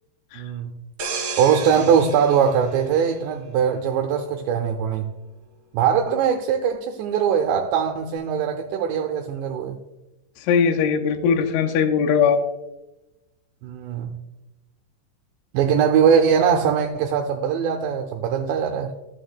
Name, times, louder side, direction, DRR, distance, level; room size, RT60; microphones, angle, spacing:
voice 1, 0.3-0.7 1.4-5.1 5.7-9.8 13.6-14.2 15.5-18.9, right 7 dB, 85° right, 3 dB, 2.6 m, -21 dB
sound 1, 1.0-3.7 4.1-4.4, right 4 dB, 60° right, 2.2 m, -33 dB
voice 2, 10.5-12.4, left 6 dB, 90° left, 5 dB, 3.1 m, -19 dB
13.0 x 7.0 x 2.2 m, 1.0 s
omnidirectional pair, 5.4 m